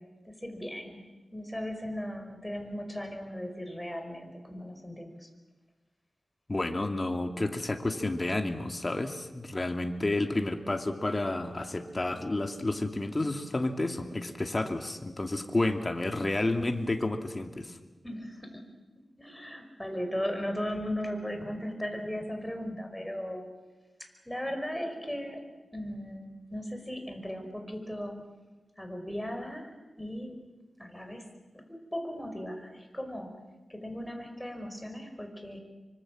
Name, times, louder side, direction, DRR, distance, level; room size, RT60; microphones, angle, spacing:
voice 1, 0.2-1.1 1.3-5.3 18.0-18.7 19.2-23.5 24.3-25.4 25.7-28.2 28.8-30.4 30.8-31.3 31.7-33.3 33.7-35.6, equal, 5° left, 4 dB, 5.4 m, -37 dB
voice 2, 6.5-17.7, left 2 dB, 30° left, 5 dB, 2.5 m, -30 dB
25.0 x 24.5 x 7.7 m, 1.2 s
wide cardioid pair, 80°, 0 cm